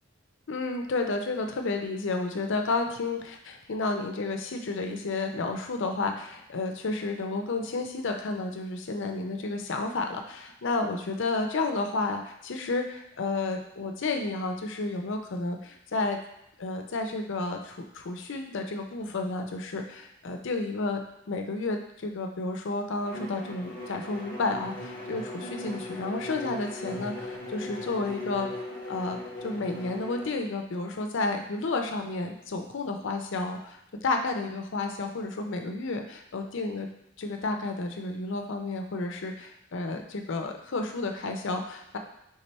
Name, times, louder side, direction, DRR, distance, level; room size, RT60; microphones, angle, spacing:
voice 1, 0.5-16.2 16.6-28.5 28.9-29.2 29.4-36.9 37.2-42.0, left 3 dB, 65° left, 4 dB, 0.6 m, -31 dB
Bowed string instrument, 23.0-30.4, left 1 dB, 20° left, 1.0 m, -39 dB
3.6 x 3.3 x 4.1 m, 0.83 s
head